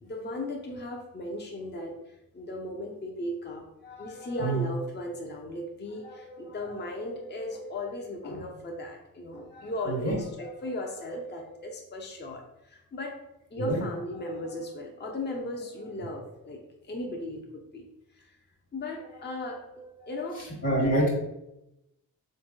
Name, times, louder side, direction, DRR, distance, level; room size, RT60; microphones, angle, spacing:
voice 1, 0.0-13.2 13.5-17.8 18.2-18.3 18.7-21.1, left 1 dB, 30° left, 1 dB, 0.7 m, -37 dB
voice 2, 20.4-21.1, right 2 dB, 45° left, -4 dB, 1.5 m, -26 dB
3.5 x 2.6 x 3.7 m, 0.88 s
supercardioid pair, 50°, 37 cm